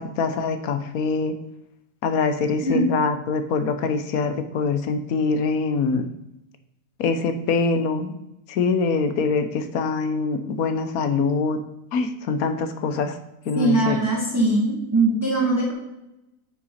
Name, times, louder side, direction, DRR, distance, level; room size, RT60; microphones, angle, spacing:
voice 1, 0.0-1.3 2.0-6.1 7.0-8.1 8.5-11.6 11.9-13.2 13.5-14.0, left 4 dB, 70° left, 8 dB, 1.2 m, -24 dB
voice 2, 13.6-15.7, right 2 dB, 10° right, -4 dB, 2.0 m, -21 dB
9.1 x 5.7 x 4.2 m, 0.86 s
omnidirectional pair, 1.7 m